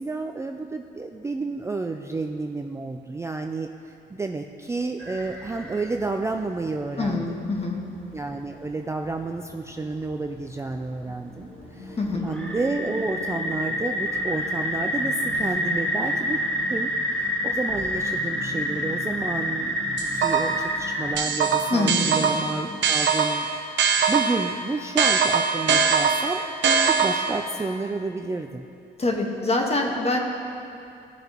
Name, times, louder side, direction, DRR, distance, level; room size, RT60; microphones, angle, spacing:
voice 1, 0.0-7.4 8.1-12.0 12.2-16.4 16.7-23.5 24.1-28.7, right 3 dB, 15° right, 4 dB, 0.4 m, -30 dB
sound 1, 5.0-5.9 6.2-6.3 7.3-7.4 8.4-8.5 9.1-9.2 9.4-9.5 10.8-11.0 11.4-11.5 11.9-21.1, equal, 5° left, 1.8 m, -28 dB
voice 2, 7.0-7.8 12.0-12.3 21.7-22.1 29.0-30.2, left 2 dB, 30° left, 1 dB, 1.4 m, -25 dB
sound 2, 11.0-23.1, left 1 dB, 80° left, 2.1 m, -40 dB
sound 3, 20.0-20.7 21.2-24.5 25.0-27.4, right 5 dB, 65° right, 1.0 m, -22 dB
16.5 x 6.5 x 3.0 m, 2.5 s
cardioid pair, 90°, 20 cm